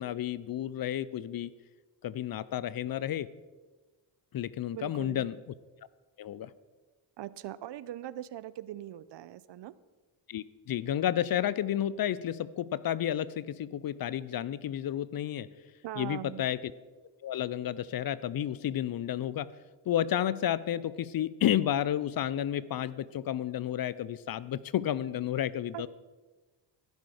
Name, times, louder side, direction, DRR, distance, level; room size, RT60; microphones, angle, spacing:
voice 1, 0.0-1.5 2.0-3.3 4.3-5.4 6.2-6.5 10.3-15.5 16.0-16.6 17.2-19.5 19.9-25.9, left 11 dB, 50° left, 19 dB, 0.5 m, -31 dB
voice 2, 4.7-5.3 7.2-9.7 15.8-16.4 25.7-25.9, right 12 dB, 60° right, 18 dB, 0.6 m, -41 dB
15.5 x 6.3 x 5.0 m, 1.2 s
supercardioid pair, 65°, 49 cm